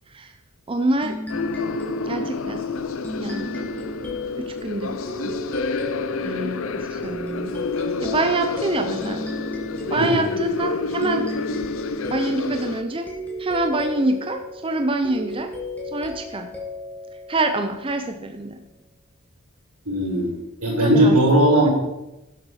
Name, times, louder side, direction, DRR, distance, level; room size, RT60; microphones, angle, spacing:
voice 1, 0.7-1.2 2.0-2.6 3.2-3.6 4.4-5.0 5.2-5.4 6.1-7.5 8.0-9.2 9.9-11.3 12.1-13.1 13.4-15.5 15.9-16.5 17.3-18.6 20.8-21.2 21.6-21.7, right 2 dB, 25° right, 6 dB, 0.6 m, -26 dB
sound 1, 1.0-18.2, left 2 dB, 5° left, 2.1 m, -34 dB
sound 2, 1.3-12.8, left 4 dB, 65° left, 0.6 m, -29 dB
voice 2, 19.8-21.7, right 1 dB, 85° right, -4 dB, 4.7 m, -18 dB
11.0 x 8.0 x 4.9 m, 0.95 s
head